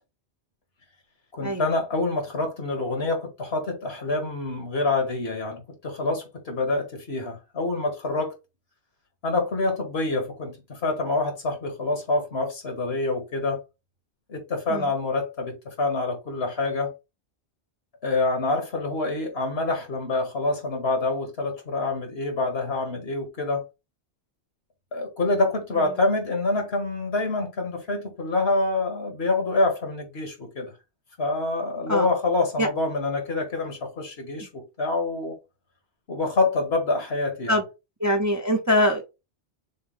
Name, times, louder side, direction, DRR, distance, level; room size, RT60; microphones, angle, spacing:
voice 1, 1.3-8.3 9.2-13.6 14.3-16.9 18.0-23.7 24.9-30.7 31.2-35.3 36.1-37.6, left 2 dB, 70° left, 1.8 m, -26 dB
voice 2, 38.0-39.1, equal, 20° right, 0.6 m, -23 dB
6.5 x 2.2 x 3.4 m
omnidirectional pair, 1.1 m